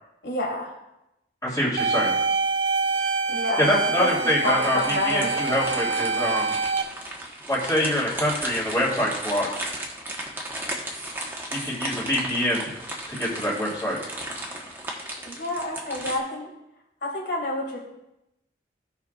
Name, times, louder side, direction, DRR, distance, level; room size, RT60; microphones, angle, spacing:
voice 1, 0.2-0.7 3.3-3.7 4.0-4.1 4.4-5.3 15.3-16.5 17.0-17.8, left 1 dB, 75° left, -1 dB, 2.4 m, -28 dB
voice 2, 1.4-2.2 3.6-4.8 5.0-6.5 7.5-9.5 11.5-12.7 13.1-14.0, left 1 dB, 20° left, -11 dB, 2.8 m, -25 dB
sound 1, 1.8-6.8, right 4 dB, 80° right, 0.6 m, -25 dB
sound 2, 4.4-16.2, right 1 dB, 15° right, 1.2 m, -35 dB
16.5 x 5.8 x 2.5 m, 0.90 s
head